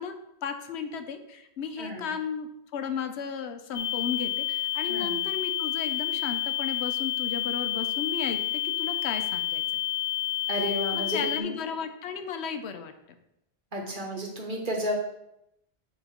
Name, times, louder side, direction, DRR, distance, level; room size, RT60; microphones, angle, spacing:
voice 1, 0.0-9.8 10.9-12.9, left 6 dB, 85° left, 8 dB, 0.9 m, -34 dB
voice 2, 1.8-2.1 4.9-5.2 10.5-11.6 13.7-15.0, equal, 50° right, -1 dB, 1.3 m, -32 dB
sound 1, 3.7-11.4, left 14 dB, 60° left, 0.7 m, -29 dB
7.9 x 3.0 x 4.2 m, 0.82 s
omnidirectional pair, 1.1 m